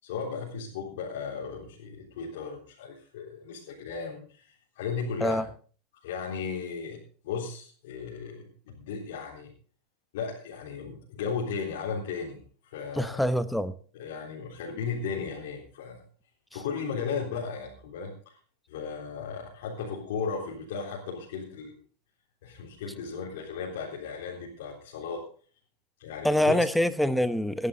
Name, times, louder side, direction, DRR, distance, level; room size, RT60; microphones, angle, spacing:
voice 1, 0.0-5.5 6.0-9.5 10.1-13.2 13.9-16.0 16.5-18.3 18.7-21.8 22.4-25.2 26.0-26.5, left 5 dB, 80° left, -4 dB, 3.8 m, -36 dB
voice 2, 13.0-13.7 26.2-27.7, left 1 dB, ahead, 13 dB, 0.9 m, -25 dB
18.0 x 11.0 x 3.9 m, 0.41 s
supercardioid pair, 115°, 0 cm